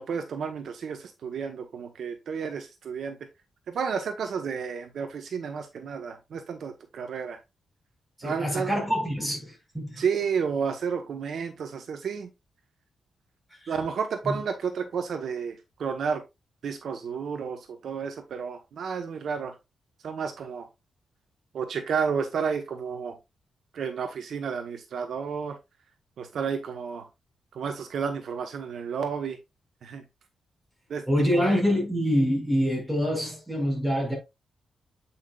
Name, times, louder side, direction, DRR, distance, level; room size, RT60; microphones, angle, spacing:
voice 1, 0.0-3.2 3.7-7.4 8.2-8.7 10.0-12.3 13.7-16.2 16.6-19.5 20.0-20.7 21.5-23.2 23.7-25.6 26.2-27.1 27.5-29.4 29.8-30.0 30.9-31.0 31.4-31.6, right 6 dB, 65° right, 1.0 m, -31 dB
voice 2, 8.2-10.0 13.6-13.7 14.2-14.4 31.1-34.2, equal, 5° right, 4.5 m, -26 dB
8.2 x 5.7 x 2.4 m
wide cardioid pair, 145°, 0 cm